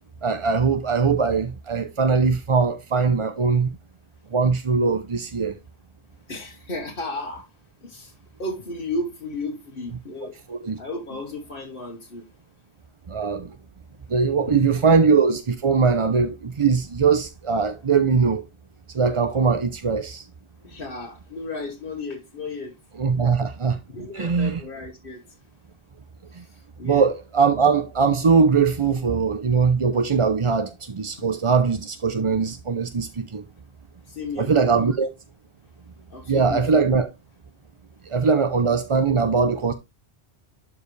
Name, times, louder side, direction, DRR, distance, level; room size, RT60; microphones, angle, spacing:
voice 1, 0.2-3.8 4.3-5.6 10.5-10.8 13.1-13.6 14.1-18.5 18.9-20.3 23.0-23.8 24.1-24.6 26.3-26.4 26.8-33.4 34.4-35.1 36.3-37.1 38.0-39.7, right 5 dB, 35° right, 0.6 m, -21 dB
voice 2, 6.3-7.5 7.8-10.4 10.8-12.2 14.4-14.6 20.6-22.8 23.9-25.2 26.4-27.1 31.2-31.3 34.1-35.0 36.1-36.9, left 2 dB, 55° left, 1.5 m, -34 dB
12.0 x 4.8 x 3.2 m
omnidirectional pair, 1.1 m